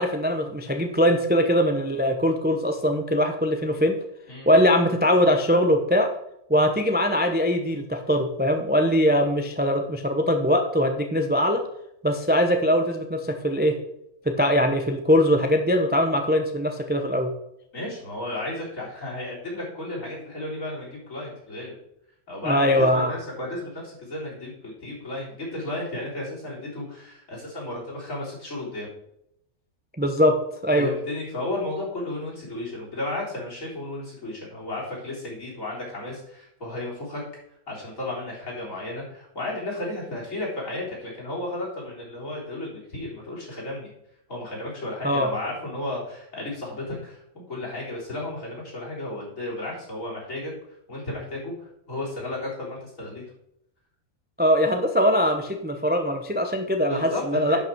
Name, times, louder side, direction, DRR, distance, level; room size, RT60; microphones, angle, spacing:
voice 1, 0.0-4.0 4.5-6.1 6.5-11.6 12.0-13.8 14.3-17.3 22.4-23.1 30.0-30.4 30.6-30.9 45.0-45.3 54.4-57.6, equal, 10° right, 5 dB, 0.5 m, -21 dB
voice 2, 17.7-21.7 22.3-28.9 30.7-37.2 37.7-43.9 44.3-50.5 50.9-53.2 56.8-57.6, left 2 dB, 60° left, -3 dB, 4.2 m, -33 dB
10.5 x 6.1 x 4.5 m, 0.78 s
omnidirectional pair, 1.5 m